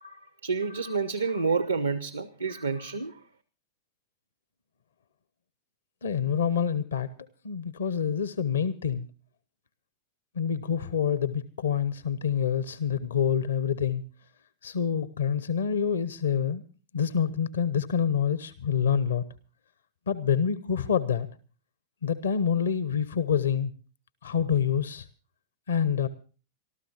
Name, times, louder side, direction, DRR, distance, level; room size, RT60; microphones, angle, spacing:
voice 1, 0.0-3.2, right 5 dB, 80° right, 14 dB, 0.7 m, -29 dB
voice 2, 6.0-7.1 7.4-9.1 10.3-14.0 14.6-16.6 16.9-19.2 20.1-21.3 22.0-23.7 24.2-25.1 25.7-26.1, left 7 dB, 70° left, 16 dB, 0.7 m, -27 dB
27.5 x 13.0 x 2.9 m, 0.37 s
figure-of-eight pair, 90°, 0 cm